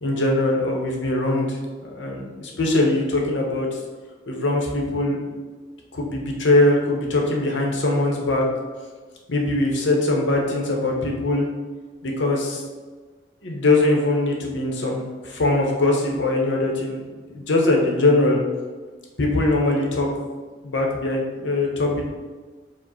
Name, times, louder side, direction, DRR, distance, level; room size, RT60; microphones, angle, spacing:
voice 1, 0.0-3.7 4.3-5.2 5.9-8.5 9.3-11.4 12.0-12.6 13.4-17.0 17.3-18.4 19.2-20.1 20.6-22.0, left 2 dB, 80° left, 0 dB, 0.9 m, -21 dB
5.0 x 2.1 x 4.0 m, 1.4 s
head